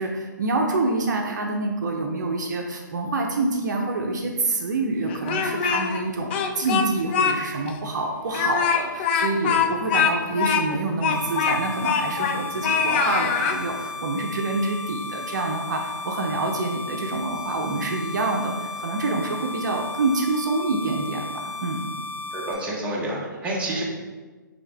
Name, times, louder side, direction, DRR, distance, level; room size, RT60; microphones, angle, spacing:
voice 1, 0.0-21.9, right 2 dB, 60° right, 2 dB, 0.6 m, -27 dB
Speech, 5.1-6.0 6.3-7.4 7.7-7.8 8.3-12.4 12.6-13.6, left 6 dB, 35° left, 0.4 m, -23 dB
sound 1, 11.1-22.5, left 3 dB, 70° left, 1.0 m, -35 dB
voice 2, 22.3-23.8, right 1 dB, 10° right, -5 dB, 0.9 m, -28 dB
5.4 x 2.8 x 3.4 m, 1.3 s
hypercardioid pair, 135°, 11 cm